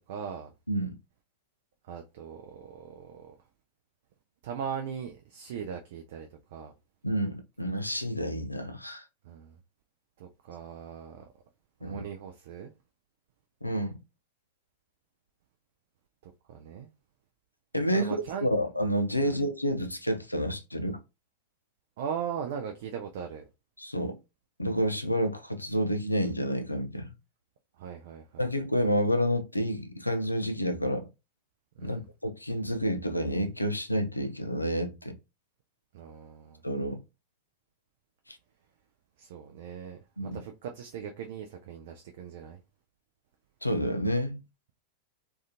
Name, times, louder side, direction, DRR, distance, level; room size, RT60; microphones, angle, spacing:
voice 1, 0.1-0.5 1.8-3.4 4.4-6.7 9.2-9.6 10.2-11.3 11.8-12.7 16.2-16.9 17.9-18.5 19.2-19.4 22.0-23.4 27.8-28.5 31.8-32.1 35.9-36.6 39.2-42.6, right 7 dB, 55° right, 0.3 m, -39 dB
voice 2, 7.0-9.0 11.8-12.0 13.6-14.0 17.7-21.0 23.8-24.2 24.6-27.1 28.4-31.1 31.8-35.2 36.6-37.0 38.3-38.4 40.2-40.4 43.6-44.4, equal, 85° left, 0.4 m, -29 dB
2.4 x 2.2 x 2.7 m
figure-of-eight pair, 90°, 0 cm